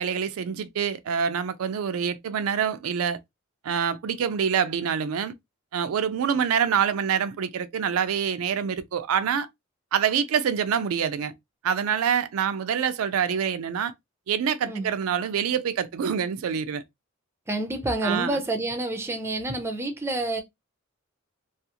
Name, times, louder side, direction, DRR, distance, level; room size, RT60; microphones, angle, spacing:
voice 1, 0.0-3.2 3.6-5.3 5.7-9.5 9.9-11.3 11.6-13.9 14.3-16.8 18.0-18.4, right 7 dB, 85° right, 0.4 m, -26 dB
voice 2, 17.5-20.4, right 2 dB, 10° right, 0.4 m, -28 dB
2.4 x 2.4 x 2.7 m
head